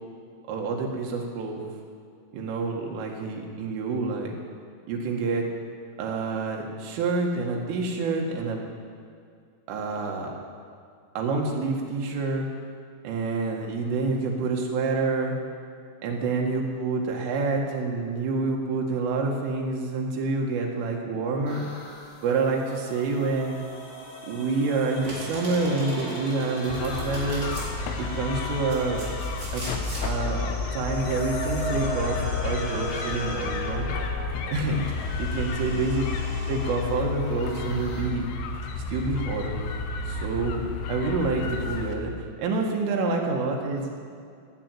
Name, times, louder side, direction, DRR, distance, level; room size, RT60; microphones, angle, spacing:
voice 1, 0.5-1.6 2.3-4.3 4.9-5.5 6.0-8.7 9.7-10.4 11.2-12.5 13.0-15.4 16.0-21.6 22.2-23.6 24.3-27.5 28.0-29.1 29.5-29.6 30.0-33.9 34.5-34.8 35.2-36.2 36.5-38.3 38.8-39.6 40.1-42.1 42.4-43.9, right 3 dB, 75° right, 0 dB, 4.3 m, -27 dB
sound 1, 21.5-38.0, left 1 dB, 65° left, 6.3 m, -38 dB
Domestic sounds home sounds, 25.0-27.7 28.4-30.1, right 1 dB, 20° right, 4.2 m, -39 dB
sound 2, 26.7-42.0, left 4 dB, 80° left, 3.6 m, -31 dB
16.5 x 8.9 x 9.2 m, 2.3 s
omnidirectional pair, 5.9 m